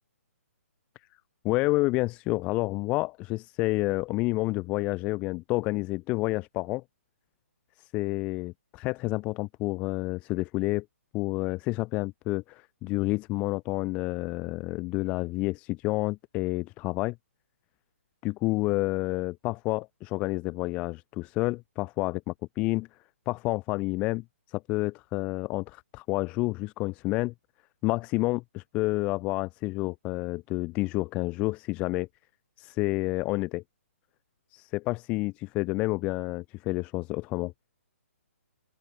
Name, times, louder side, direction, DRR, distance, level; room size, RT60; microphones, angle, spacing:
voice 1, 1.4-6.8 7.8-10.9 11.1-17.2 18.2-22.9 23.3-27.3 27.8-32.1 32.6-33.6 34.5-37.5, left 21 dB, 15° left, 3.5 m, -29 dB
open air
hypercardioid pair, 175°, 8 cm